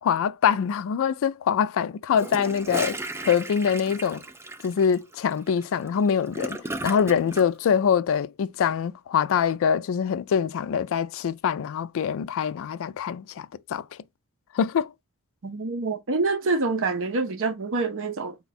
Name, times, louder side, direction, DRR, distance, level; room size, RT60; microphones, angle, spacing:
voice 1, 0.0-4.2 4.6-6.6 6.8-13.8 14.5-14.9, left 7 dB, 65° left, 0.3 m, -24 dB
Gurgling / Toilet flush, 2.1-7.5, right 2 dB, 10° right, 0.4 m, -35 dB
voice 2, 15.4-18.4, right 3 dB, 60° right, 0.7 m, -26 dB
4.3 x 2.3 x 4.0 m
head